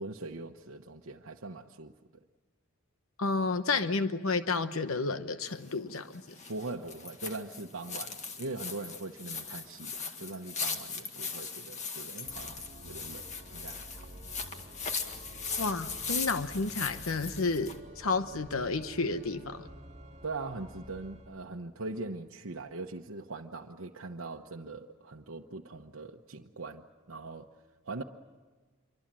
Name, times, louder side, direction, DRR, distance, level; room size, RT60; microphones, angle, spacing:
voice 1, 0.0-1.9 6.5-13.2 13.5-14.1 20.2-27.5 27.8-28.0, right 3 dB, 75° right, 1.0 m, -41 dB
voice 2, 3.2-6.2 15.6-19.7, left 3 dB, 90° left, 1.0 m, -31 dB
sound 1, 5.5-17.8, left 5 dB, 35° left, 1.9 m, -39 dB
Organ, 12.2-21.4, right 1 dB, 30° right, 2.1 m, -50 dB
27.0 x 24.0 x 7.5 m
head